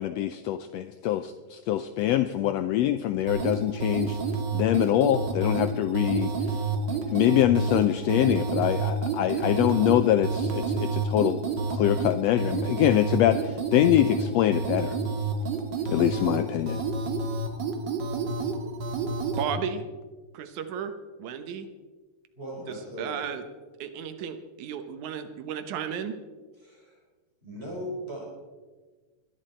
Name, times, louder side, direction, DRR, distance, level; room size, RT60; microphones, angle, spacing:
voice 1, 0.0-4.2 4.5-6.5 7.1-11.4 11.7-15.0 15.9-16.8, left 12 dB, 80° left, 11 dB, 1.6 m, -24 dB
sound 1, 3.3-19.5, right 3 dB, 45° right, 1.9 m, -29 dB
voice 2, 19.4-19.8 20.3-20.9 21.2-21.7 23.0-23.4 23.8-26.1, right 7 dB, 85° right, 9 dB, 2.4 m, -33 dB
voice 3, 22.3-23.2 26.6-27.0 27.4-28.2, equal, 20° right, -3 dB, 5.0 m, -38 dB
20.0 x 13.0 x 4.4 m, 1.3 s
omnidirectional pair, 3.3 m